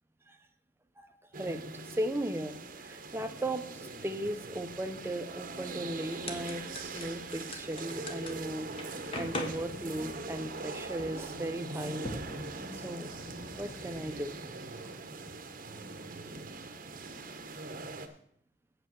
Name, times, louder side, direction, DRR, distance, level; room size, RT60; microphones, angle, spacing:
voice 1, 1.0-1.6 1.9-2.6 2.8-12.1 12.7-13.1 13.6-14.4 14.8-14.9, right 1 dB, 15° right, 7 dB, 0.8 m, -37 dB
sound 1, 1.3-18.1, right 3 dB, 45° right, 1.0 m, -42 dB
sound 2, 6.1-14.2, left 1 dB, 30° left, 1.2 m, -44 dB
8.3 x 7.7 x 6.3 m, 0.66 s
head